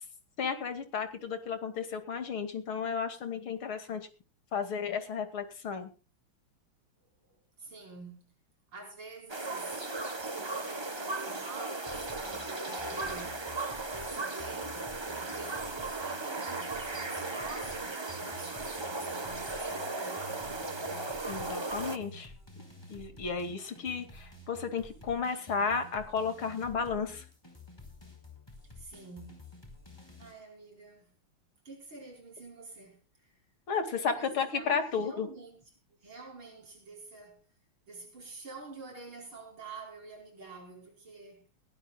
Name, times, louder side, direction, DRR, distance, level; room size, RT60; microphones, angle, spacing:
voice 1, 0.4-4.1 4.5-5.9 21.3-22.3 22.9-27.2 33.7-35.3, left 5 dB, 85° left, 3.2 m, -33 dB
voice 2, 7.3-8.3 8.7-9.9 10.4-13.4 13.9-14.8 15.3-21.1 28.7-29.4 30.2-31.1 31.6-33.4 34.0-35.6 36.0-37.4 37.9-41.4, right 3 dB, 85° right, 6.0 m, -47 dB
sound 1, 9.3-22.0, right 2 dB, 15° right, 1.0 m, -36 dB
sound 2, 11.9-30.3, left 1 dB, 10° left, 4.8 m, -51 dB
20.0 x 18.0 x 2.3 m
omnidirectional pair, 2.2 m